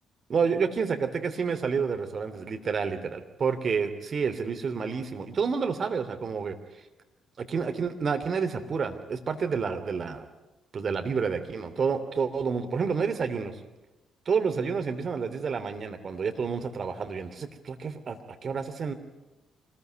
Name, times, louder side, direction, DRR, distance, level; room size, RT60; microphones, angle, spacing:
voice 1, 0.3-6.6 7.4-10.3 10.7-13.5 14.2-18.9, right 5 dB, 50° right, 7 dB, 3.2 m, -29 dB
26.0 x 21.0 x 9.5 m, 1.0 s
hypercardioid pair, 45°, 0 cm